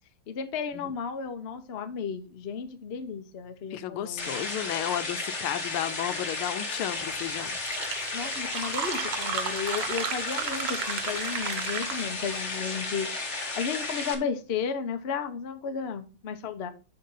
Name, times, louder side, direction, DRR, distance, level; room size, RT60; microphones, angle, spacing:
voice 1, 0.3-4.7 8.1-16.7, left 6 dB, 50° left, 0.7 m, -34 dB
voice 2, 3.7-7.5, left 11 dB, 85° left, 1.5 m, -33 dB
sound 1, 4.2-14.1, left 3 dB, 35° left, 1.8 m, -33 dB
Fill (with liquid), 7.2-7.3 7.5-12.3, right 8 dB, 65° right, 1.4 m, -34 dB
10.5 x 3.7 x 5.5 m
omnidirectional pair, 2.3 m